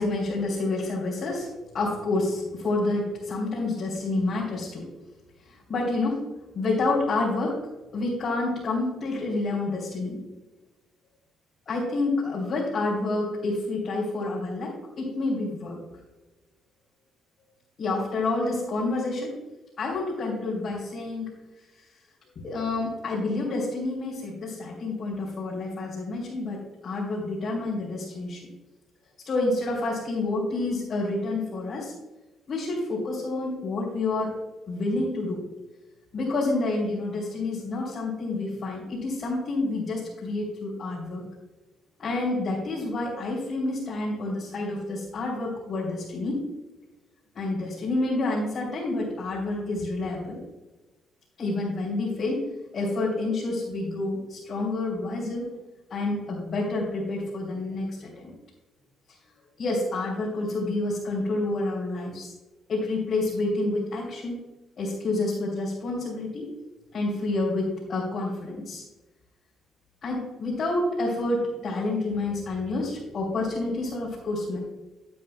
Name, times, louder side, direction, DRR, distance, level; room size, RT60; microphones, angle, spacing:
voice 1, 0.0-4.9 5.4-6.2 6.5-7.6 7.9-10.2 11.7-15.8 17.8-19.3 19.8-21.3 22.4-28.5 29.2-31.9 32.5-34.3 34.7-35.4 36.1-41.2 42.0-46.4 47.3-50.4 51.4-55.5 55.9-58.3 59.6-62.3 62.7-64.4 64.8-66.5 66.9-68.8 70.0-74.6, left 2 dB, 45° left, -6 dB, 3.0 m, -28 dB
13.5 x 8.6 x 2.2 m, 1.1 s
cardioid pair, 125°, 0 cm